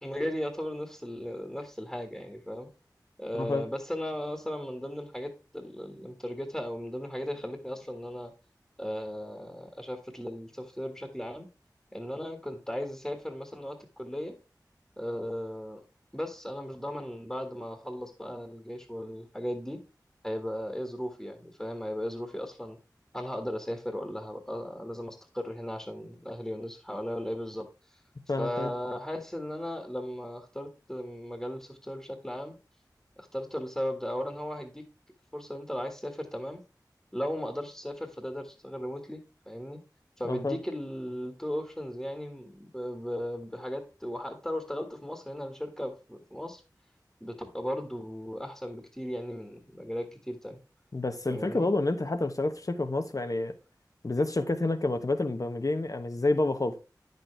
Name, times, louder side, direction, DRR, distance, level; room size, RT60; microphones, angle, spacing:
voice 1, 0.0-2.7 3.2-8.3 8.8-11.5 11.9-14.3 15.0-15.8 16.1-19.8 20.2-22.8 23.1-28.0 28.4-32.6 33.2-34.8 35.3-36.6 37.1-39.2 39.5-39.8 40.2-46.6 47.2-50.6 51.3-51.7, equal, 5° left, 1.6 m, -36 dB
voice 2, 3.3-3.7 28.3-28.7 40.3-40.6 50.9-53.5 54.0-56.8, left 2 dB, 50° left, 1.1 m, -29 dB
9.8 x 6.8 x 3.3 m
wide cardioid pair, 55°, 7 cm